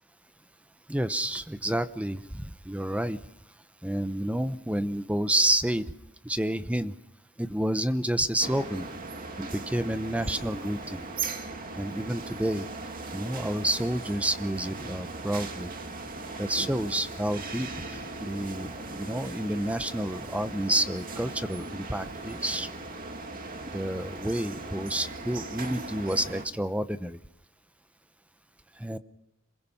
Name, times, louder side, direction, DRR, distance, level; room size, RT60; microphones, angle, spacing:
voice 1, 0.9-3.2 3.8-5.9 6.2-6.9 7.4-8.9 9.4-11.0 11.8-12.7 13.1-15.7 16.4-22.7 23.7-27.2 28.8-29.0, right 1 dB, 5° right, 12 dB, 0.8 m, -29 dB
sound 1, 8.4-26.5, right 3 dB, 45° right, 2.3 m, -38 dB
27.0 x 21.5 x 5.8 m, 0.83 s
head